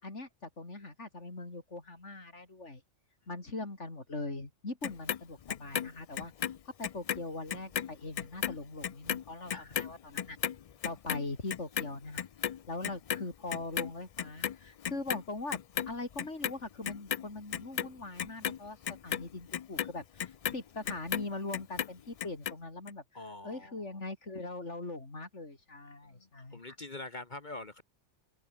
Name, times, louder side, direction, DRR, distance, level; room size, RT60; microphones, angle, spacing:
voice 1, 0.0-2.8 3.3-6.5 6.8-10.4 10.8-12.3 12.7-15.6 15.9-18.8 19.0-23.0 23.4-26.6, left 2 dB, 90° left, 4.4 m, -41 dB
Clock, 4.8-7.2 7.5-13.9 14.2-15.2 15.5-16.5 16.8-21.3 21.5-22.5 22.9-23.0, left 9 dB, 75° left, 0.3 m, -35 dB
voice 2, 23.1-23.8 26.0-27.8, left 2 dB, 40° left, 1.7 m, -45 dB
open air
omnidirectional pair, 1.2 m